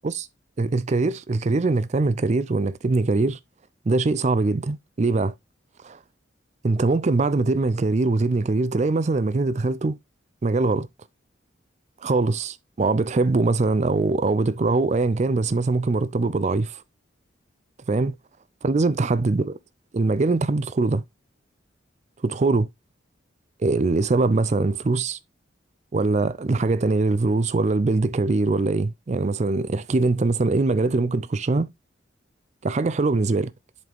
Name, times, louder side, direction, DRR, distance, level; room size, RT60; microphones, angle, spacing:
voice 1, 0.6-3.4 3.9-5.3 5.8-6.0 6.6-10.0 10.4-10.9 12.0-16.8 17.9-18.2 18.6-19.6 19.9-21.0 22.2-22.7 23.6-25.2 25.9-31.7 32.6-33.5, right 3 dB, 35° right, 0.4 m, -22 dB
7.5 x 4.1 x 3.4 m
head